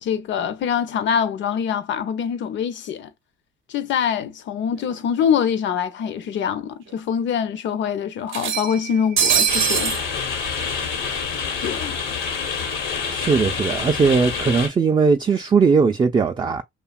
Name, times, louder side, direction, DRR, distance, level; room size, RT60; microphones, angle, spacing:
voice 1, 0.0-3.1 3.7-10.0 11.6-12.0, left 8 dB, 65° left, 0.6 m, -24 dB
sound 1, 4.9-5.0 5.3-5.4 6.4-6.5 6.9-7.0 8.3-10.0, right 8 dB, 80° right, 0.6 m, -22 dB
sound 2, 9.5-14.7, left 5 dB, 90° left, 1.0 m, -27 dB
voice 2, 13.1-16.6, right 5 dB, 25° right, 0.3 m, -19 dB
2.8 x 2.3 x 2.3 m
cardioid pair, 90°, 20 cm